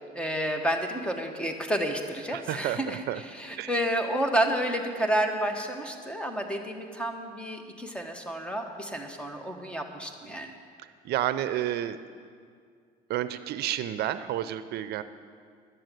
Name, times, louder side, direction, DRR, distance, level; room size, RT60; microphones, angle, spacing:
voice 1, 0.1-10.5, right 1 dB, 5° left, 4 dB, 1.3 m, -30 dB
voice 2, 2.3-3.2 3.6-3.9 11.0-12.0 13.1-15.0, right 12 dB, 75° right, 13 dB, 0.5 m, -30 dB
11.5 x 7.7 x 9.1 m, 2.1 s
cardioid pair, 110°, 17 cm